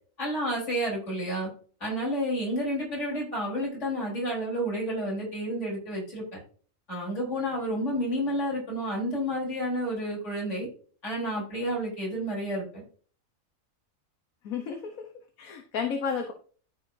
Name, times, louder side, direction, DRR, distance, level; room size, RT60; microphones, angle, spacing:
voice 1, 0.2-1.5 1.8-6.2 6.9-10.7 11.0-12.8, equal, 55° left, -3 dB, 4.2 m, -30 dB
voice 2, 14.4-15.1 15.4-16.3, left 6 dB, 80° left, 4 dB, 1.4 m, -32 dB
14.0 x 4.9 x 2.6 m, 0.43 s
omnidirectional pair, 1.5 m